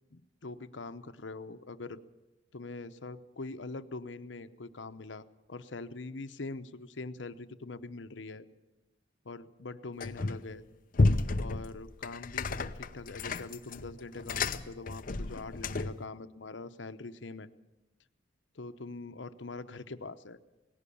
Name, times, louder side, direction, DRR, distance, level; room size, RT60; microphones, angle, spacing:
voice 1, 0.1-2.0 2.5-8.5 9.2-10.6 11.4-17.5 18.5-20.4, left 3 dB, 85° left, 11 dB, 0.9 m, -43 dB
sound 1, 10.0-10.5 10.9-16.1, left 3 dB, 50° left, 0.7 m, -31 dB
18.5 x 16.5 x 8.5 m, 1.0 s
head